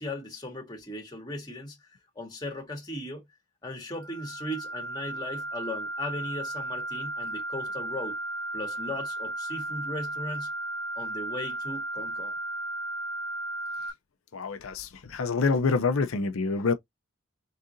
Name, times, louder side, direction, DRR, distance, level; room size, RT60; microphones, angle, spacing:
voice 1, 0.0-1.8 2.2-3.2 3.6-8.2 8.5-10.5 11.0-12.3, left 1 dB, 20° left, 1.7 m, -37 dB
sound 1, 4.0-13.9, right 2 dB, 5° right, 2.3 m, -35 dB
voice 2, 14.3-16.7, left 4 dB, 90° left, 0.6 m, -26 dB
4.0 x 3.8 x 2.6 m
head